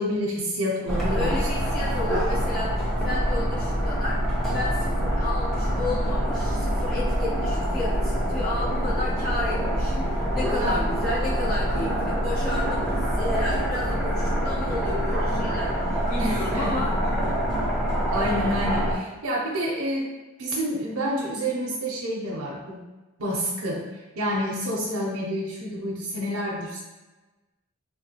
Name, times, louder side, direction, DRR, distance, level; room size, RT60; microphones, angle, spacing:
voice 1, 0.0-1.7 10.6-10.8 16.1-16.8 18.1-20.1 20.4-22.8 23.2-23.9 24.2-26.8, equal, 80° right, -4 dB, 0.5 m, -28 dB
sound 1, 0.9-18.9, equal, ahead, 0.5 m, -25 dB
voice 2, 1.1-4.2 4.5-17.0 17.2-17.6 18.3-18.4, left 2 dB, 40° left, -10 dB, 1.2 m, -32 dB
3.1 x 2.2 x 2.8 m, 1.1 s
head